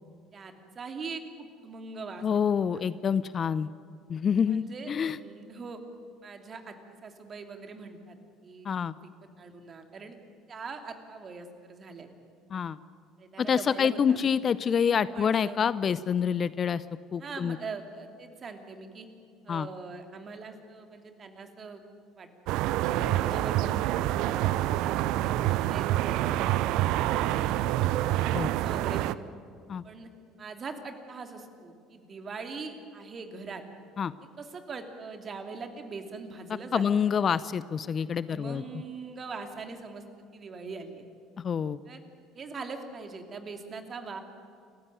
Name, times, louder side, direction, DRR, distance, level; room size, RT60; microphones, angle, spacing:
voice 1, 0.3-2.2 4.4-5.8 6.2-6.7 7.0-8.2 8.4-9.1 9.4-10.2 10.5-12.1 13.2-14.3 14.9-15.6 17.2-19.1 19.4-21.8 22.2-25.0 25.5-28.0 28.6-29.3 29.8-30.1 30.4-33.6 34.4-37.1 38.3-40.0 40.3-41.0 41.8-42.0 42.3-44.2, right 4 dB, 35° right, 6 dB, 3.0 m, -42 dB
voice 2, 2.2-3.7 4.1-5.2 8.6-8.9 12.5-12.8 13.4-16.8 17.1-17.6 19.5-19.7 28.3-28.5 29.7-29.8 34.0-34.1 36.7-38.6 41.4-41.8, left 7 dB, 40° left, 18 dB, 0.6 m, -27 dB
sound 1, 22.5-29.2, right 14 dB, 60° right, 0.6 m, -27 dB
29.0 x 15.5 x 9.2 m, 2.4 s
figure-of-eight pair, 60°, 0 cm